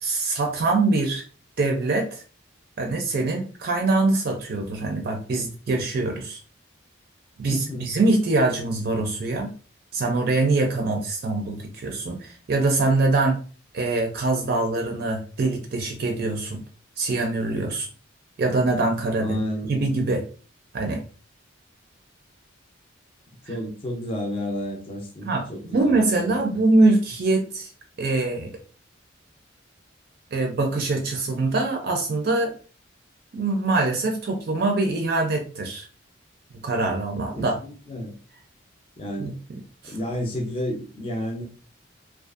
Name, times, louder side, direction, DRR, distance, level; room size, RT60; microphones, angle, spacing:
voice 1, 0.0-1.3 1.6-2.2 2.8-6.4 7.4-9.5 9.9-13.4 13.7-16.6 17.0-17.9 18.4-19.4 19.7-20.2 20.7-21.0 23.5-23.6 25.2-27.7 28.0-28.5 30.3-32.5 33.3-35.9 36.6-37.6 39.2-39.3 39.8-40.0, right 2 dB, 50° right, 2 dB, 0.4 m, -23 dB
voice 2, 7.5-7.9 19.2-19.9 23.5-26.0 37.4-38.1 39.0-39.4 39.8-41.4, equal, 25° left, 0 dB, 0.5 m, -31 dB
2.5 x 2.3 x 2.4 m, 0.38 s
head